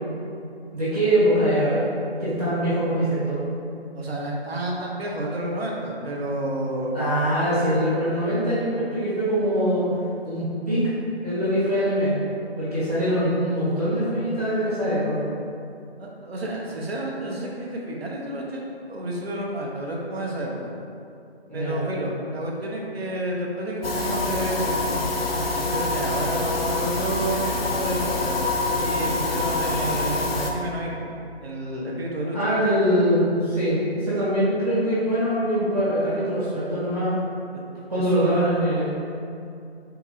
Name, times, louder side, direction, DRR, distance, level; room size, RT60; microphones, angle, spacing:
voice 1, 0.7-1.8 2.2-3.4 6.9-9.9 10.2-10.9 11.2-12.2 12.6-15.2 21.5-21.8 32.3-37.2 37.9-38.8, equal, 35° right, -12 dB, 1.2 m, -23 dB
voice 2, 3.9-7.0 16.0-20.7 21.5-24.8 25.3-28.4 28.7-31.1 31.4-32.4 37.5-37.6 38.0-38.6, right 1 dB, 65° right, -2 dB, 0.7 m, -30 dB
sound 1, 23.8-30.5, left 2 dB, 65° left, 0.5 m, -25 dB
3.7 x 2.8 x 2.3 m, 2.5 s
figure-of-eight pair, 175°, 33 cm